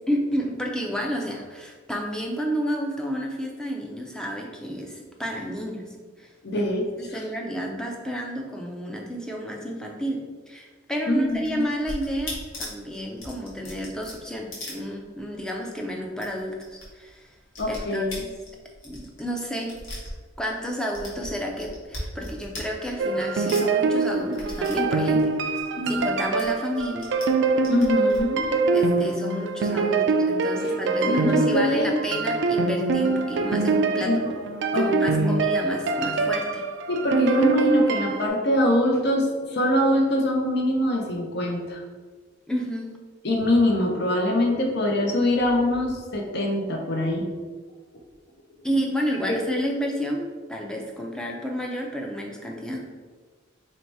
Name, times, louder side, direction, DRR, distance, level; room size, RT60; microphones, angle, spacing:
voice 1, 0.1-5.9 6.2-6.6 7.0-17.3 17.7-18.3 18.8-19.8 20.4-25.6 25.9-27.1 28.7-34.1 34.7-36.6 42.5-42.9 48.6-53.0, equal, 5° left, 0 dB, 0.4 m, -31 dB
voice 2, 6.4-7.1 11.1-11.7 17.6-18.2 25.8-26.1 27.7-28.5 30.6-30.7 31.1-31.9 34.0-34.3 34.7-35.4 36.9-41.8 43.2-47.3 49.3-49.4, left 1 dB, 55° left, 1 dB, 0.7 m, -23 dB
sound 1, 11.3-15.5 15.7-15.8 16.1-16.9 17.1-20.6 20.9-23.2 23.5-26.1 26.4-27.3 27.6-28.2, left 1 dB, 80° left, 1.3 m, -38 dB
sound 2, 23.0-38.3, right 3 dB, 60° right, 0.3 m, -24 dB
3.1 x 2.8 x 4.5 m, 1.4 s
head